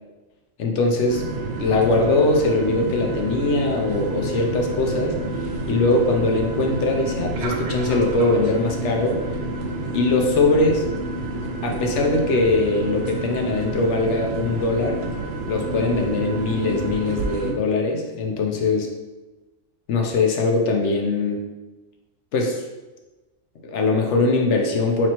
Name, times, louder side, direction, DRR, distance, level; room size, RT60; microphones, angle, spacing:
voice 1, 0.6-1.3 1.6-5.2 5.7-9.2 9.9-10.8 11.6-15.0 15.5-18.9 19.9-21.4 22.3-22.6 23.6-25.1, left 2 dB, 70° left, 1 dB, 0.9 m, -21 dB
sound 1, 1.1-17.5, right 2 dB, 65° right, 0.8 m, -29 dB
3.0 x 3.0 x 4.2 m, 1.2 s
omnidirectional pair, 1.3 m